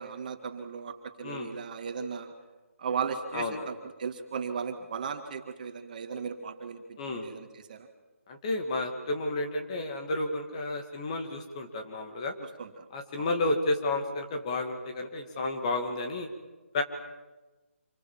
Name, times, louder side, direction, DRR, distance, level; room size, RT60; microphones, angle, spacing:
voice 1, 0.0-2.3 2.8-7.9 12.4-12.9 13.2-13.3, right 6 dB, 35° right, 5 dB, 2.2 m, -36 dB
voice 2, 3.3-3.6 7.0-7.3 8.3-12.3 12.9-16.3 16.7-16.8, left 2 dB, 25° left, 5 dB, 2.3 m, -31 dB
27.5 x 23.5 x 7.5 m, 1.2 s
hypercardioid pair, 165°, 7 cm